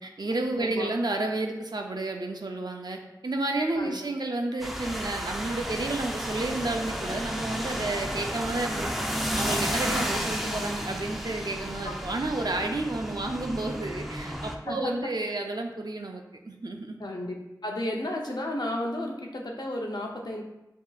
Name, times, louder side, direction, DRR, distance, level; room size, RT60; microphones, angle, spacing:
voice 1, 0.0-9.0 9.4-17.0, right 2 dB, 65° right, 2 dB, 0.6 m, -31 dB
voice 2, 0.6-0.9 3.8-4.0 14.7-15.4 17.0-17.3 17.6-20.4, left 1 dB, 70° left, 0 dB, 0.7 m, -33 dB
sound 1, 4.6-14.5, equal, ahead, 0.5 m, -32 dB
7.1 x 2.8 x 2.4 m, 0.94 s
wide cardioid pair, 45°, 7 cm